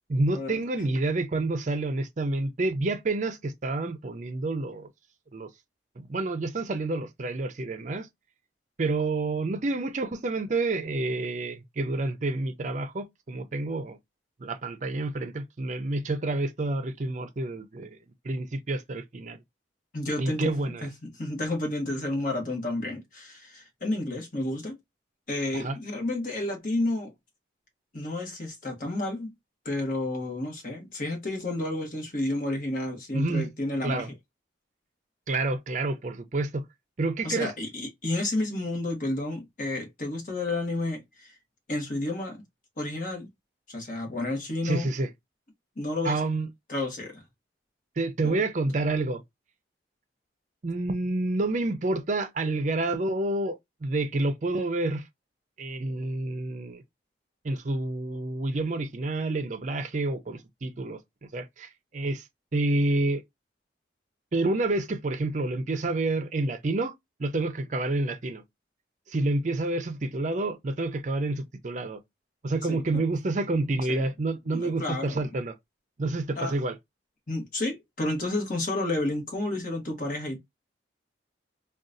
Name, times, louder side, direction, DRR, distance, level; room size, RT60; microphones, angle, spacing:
voice 1, 0.1-4.9 5.3-5.5 6.0-8.1 8.8-14.0 14.4-18.0 18.2-19.4 20.2-20.9 25.5-25.8 33.1-33.5 33.8-34.1 35.3-36.6 37.0-37.5 44.6-45.1 46.0-46.5 48.0-49.2 50.6-55.1 55.6-56.8 57.4-61.0 61.3-62.3 62.5-63.2 64.3-66.9 67.2-68.4 69.1-72.0 72.4-75.6 76.0-76.8, right 2 dB, 40° right, 0.5 m, -28 dB
voice 2, 19.9-20.5 20.8-24.8 25.3-27.1 27.9-29.3 29.6-34.0 37.2-41.3 41.7-42.4 42.8-43.3 43.7-44.9 45.8-46.2 46.7-47.2 48.2-48.4 72.7-73.0 73.9-74.0 74.5-75.3 76.4-76.5 77.3-80.4, left 2 dB, 45° left, 1.2 m, -31 dB
3.7 x 2.3 x 2.5 m
head